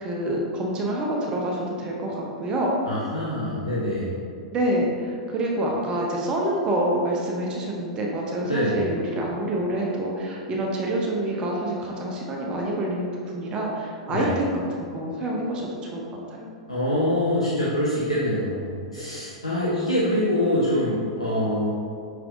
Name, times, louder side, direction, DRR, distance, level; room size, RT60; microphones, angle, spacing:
voice 1, 0.0-2.7 4.5-16.0 16.4-16.5, right 1 dB, 25° right, -2 dB, 0.6 m, -27 dB
voice 2, 2.9-4.1 8.4-8.8 14.1-14.3 16.7-21.7, left 1 dB, 90° left, -8 dB, 0.8 m, -25 dB
5.9 x 3.3 x 2.5 m, 2.4 s
figure-of-eight pair, 100°, 3 cm